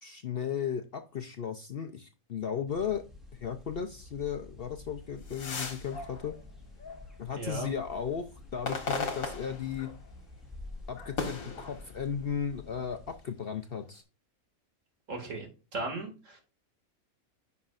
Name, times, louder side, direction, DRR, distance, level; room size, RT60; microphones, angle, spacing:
voice 1, 0.0-3.0 3.3-6.3 7.2-9.9 10.9-14.0, left 7 dB, 55° left, 6 dB, 0.7 m, -35 dB
sound 1, 2.7-13.1, left 2 dB, ahead, 2.2 m, -50 dB
sound 2, 5.0-7.4 7.9-10.2 10.5-12.4 13.1-14.0, left 4 dB, 70° left, 1.9 m, -38 dB
voice 2, 7.4-7.7 15.1-16.4, right 2 dB, 60° right, 3 dB, 2.6 m, -37 dB
9.8 x 5.8 x 2.5 m, 0.32 s
omnidirectional pair, 1.5 m